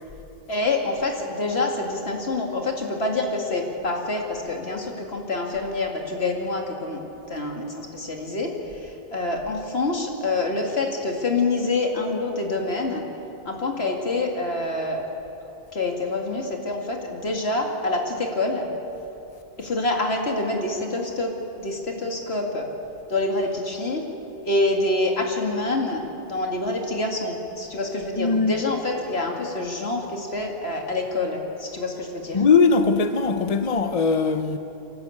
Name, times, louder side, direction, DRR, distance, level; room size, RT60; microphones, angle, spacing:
voice 1, 0.5-7.0 7.3-13.0 13.4-15.1 15.7-18.7 19.6-22.7 23.1-24.0 24.4-32.4, left 2 dB, 70° left, 2.6 m, -26 dB
voice 2, 28.2-28.5 32.3-34.6, left 4 dB, 40° left, 0.8 m, -20 dB
28.0 x 11.5 x 8.5 m
omnidirectional pair, 1.1 m